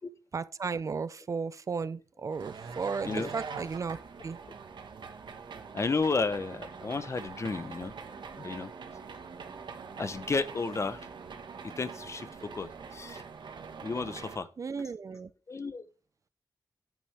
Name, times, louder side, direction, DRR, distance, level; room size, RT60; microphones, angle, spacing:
voice 1, 0.3-4.4 14.6-15.3, right 5 dB, 45° right, 0.4 m, -35 dB
sound 1, 2.3-14.4, right 5 dB, 90° right, 1.3 m, -44 dB
voice 2, 5.7-7.9 8.4-8.7 10.0-11.0 11.6-13.2 13.8-14.5 15.5-15.8, left 4 dB, 40° left, 0.7 m, -32 dB
9.4 x 9.1 x 3.3 m
wide cardioid pair, 150°, 8 cm